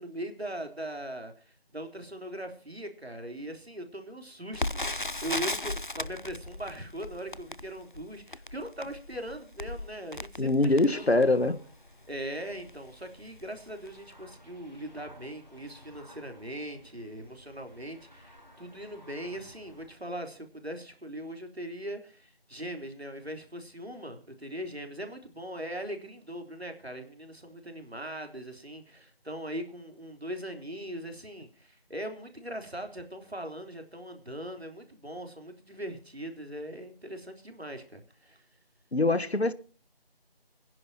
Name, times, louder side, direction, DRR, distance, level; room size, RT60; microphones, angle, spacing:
voice 1, 0.0-11.6 12.1-38.4, right 1 dB, 85° right, 3.8 m, -40 dB
Crackle, 4.5-11.5 12.1-12.2 12.5-12.8 13.4-13.6 13.9-14.0, left 2 dB, 55° left, 0.5 m, -36 dB
voice 2, 10.4-11.6 38.9-39.5, left 2 dB, 90° left, 1.4 m, -23 dB
sound 1, 10.7-20.0, equal, 45° right, 4.1 m, -55 dB
25.0 x 11.0 x 2.9 m
figure-of-eight pair, 180°, 31 cm